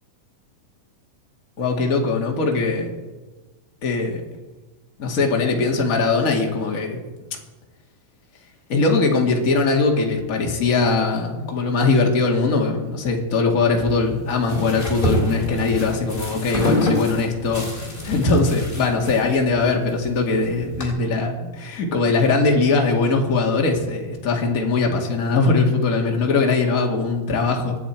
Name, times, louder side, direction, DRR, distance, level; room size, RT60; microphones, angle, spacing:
voice 1, 1.6-3.0 3.8-4.2 5.0-6.9 8.7-27.8, left 3 dB, 35° left, 1 dB, 1.5 m, -21 dB
sound 1, 13.8-20.9, left 1 dB, 15° left, 2.8 m, -27 dB
24.0 x 10.0 x 4.5 m, 1.2 s
omnidirectional pair, 4.4 m